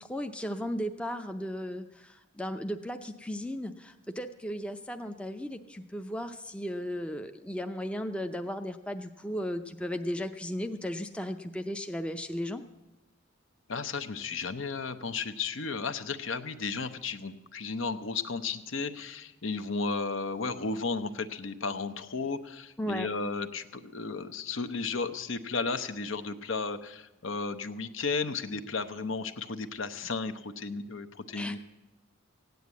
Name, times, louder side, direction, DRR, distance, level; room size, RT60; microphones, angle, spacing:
voice 1, 0.0-12.6 22.8-23.1 31.3-31.6, equal, 5° left, 6 dB, 0.5 m, -35 dB
voice 2, 13.7-31.6, left 4 dB, 65° left, 10 dB, 0.8 m, -34 dB
16.0 x 9.4 x 8.3 m, 1.0 s
head